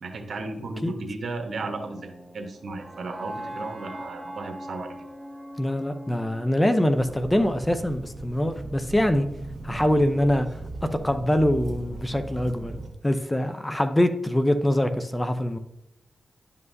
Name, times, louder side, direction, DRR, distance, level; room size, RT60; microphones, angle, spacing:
voice 1, 0.0-5.0, right 3 dB, 70° right, 4 dB, 1.2 m, -35 dB
sound 1, 1.5-7.6, equal, 10° right, 1.5 m, -41 dB
voice 2, 5.6-9.3 9.6-10.5 10.8-15.6, left 1 dB, 15° left, 9 dB, 0.6 m, -24 dB
sound 2, 6.9-12.9, right 2 dB, 50° right, 1.8 m, -37 dB
10.5 x 5.5 x 2.7 m, 0.84 s
cardioid pair, 60°, 0 cm